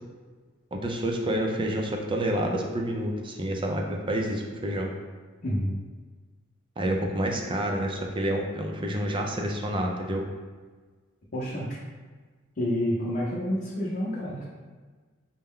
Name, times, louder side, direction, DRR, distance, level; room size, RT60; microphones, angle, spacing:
voice 1, 0.7-4.9 6.8-10.2, right 1 dB, 25° right, 1 dB, 0.5 m, -28 dB
voice 2, 5.4-5.8 11.3-11.8 12.6-14.4, equal, 45° left, -8 dB, 0.7 m, -28 dB
5.6 x 2.1 x 3.6 m, 1.4 s
head